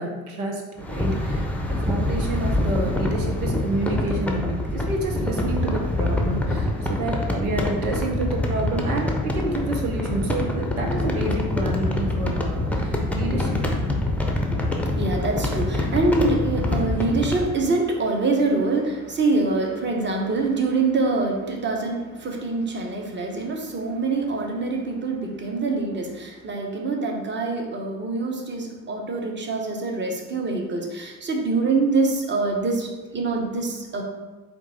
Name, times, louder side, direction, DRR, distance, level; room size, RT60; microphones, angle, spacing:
voice 1, 0.0-13.6, right 2 dB, 90° right, 1 dB, 0.6 m, -29 dB
sound 1, 0.8-17.5, left 1 dB, 5° left, 0.6 m, -25 dB
voice 2, 14.5-34.0, right 3 dB, 25° right, 1 dB, 0.9 m, -25 dB
4.5 x 2.6 x 4.0 m, 1.2 s
figure-of-eight pair, 50°, 43 cm